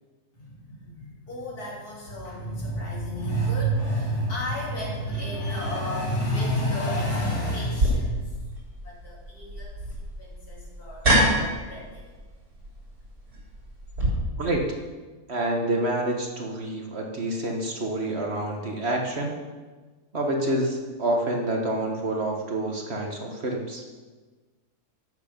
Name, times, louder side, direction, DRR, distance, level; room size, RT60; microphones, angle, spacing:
voice 1, 0.4-8.5 8.8-9.7 10.2-11.1 11.4-11.9, right 1 dB, 75° left, -4 dB, 3.4 m, -29 dB
sound 1, 7.8-14.1, right 1 dB, 75° right, 3.9 m, -27 dB
voice 2, 15.3-19.3 20.1-23.8, right 1 dB, 45° right, 1 dB, 1.5 m, -27 dB
12.5 x 8.2 x 5.2 m, 1.3 s
omnidirectional pair, 1.6 m